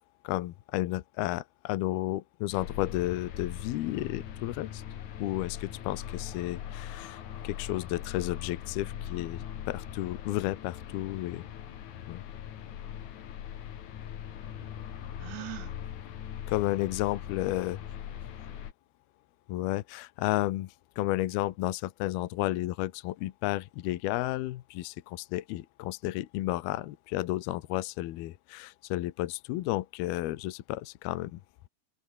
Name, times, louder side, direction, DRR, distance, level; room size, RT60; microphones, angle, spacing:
voice 1, 0.2-4.8 5.2-11.5 12.1-12.2 16.5-17.8 19.5-31.4, left 16 dB, 75° left, 2.8 m, -32 dB
sound 1, 2.5-18.7, left 10 dB, 55° left, 2.7 m, -41 dB
voice 2, 14.3-15.4 17.1-18.7, right 3 dB, 50° right, 9.3 m, -60 dB
Gasp, 15.2-15.7, right 20 dB, 85° right, 2.8 m, -40 dB
omnidirectional pair, 4.7 m